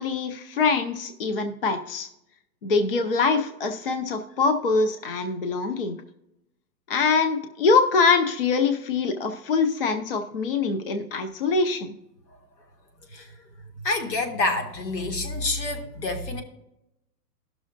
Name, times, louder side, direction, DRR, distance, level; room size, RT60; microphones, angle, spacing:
voice 1, 0.0-2.1 2.6-6.0 6.9-11.9, left 4 dB, 35° left, 8 dB, 0.5 m, -24 dB
voice 2, 13.8-16.4, left 2 dB, 80° left, 5 dB, 2.0 m, -27 dB
17.5 x 6.2 x 2.5 m, 0.88 s
hypercardioid pair, 175°, 50 cm